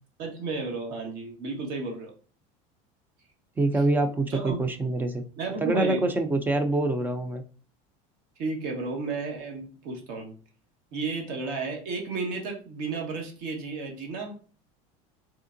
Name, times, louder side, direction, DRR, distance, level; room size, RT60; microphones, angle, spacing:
voice 1, 0.2-2.1 4.3-4.6 5.4-6.0 8.4-10.3 10.9-14.4, right 4 dB, 60° right, 1 dB, 1.4 m, -32 dB
voice 2, 3.6-5.2 5.6-7.4, right 2 dB, 10° right, 7 dB, 0.5 m, -25 dB
3.6 x 3.5 x 2.6 m, 0.38 s
cardioid pair, 145°, 17 cm